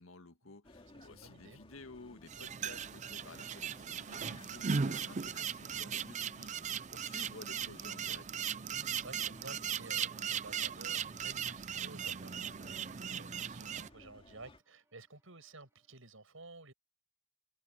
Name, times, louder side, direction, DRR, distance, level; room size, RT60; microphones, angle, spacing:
voice 1, 0.0-8.3, left 3 dB, 90° left, 1.7 m, -54 dB
sound 1, 0.6-14.6, left 1 dB, 30° left, 3.2 m, -59 dB
voice 2, 1.0-1.6 8.7-16.7, right 3 dB, 75° right, 7.2 m, -53 dB
sound 2, 1.2-15.9, right 1 dB, 15° right, 5.0 m, -72 dB
sound 3, 2.3-13.9, right 7 dB, 35° right, 0.5 m, -38 dB
head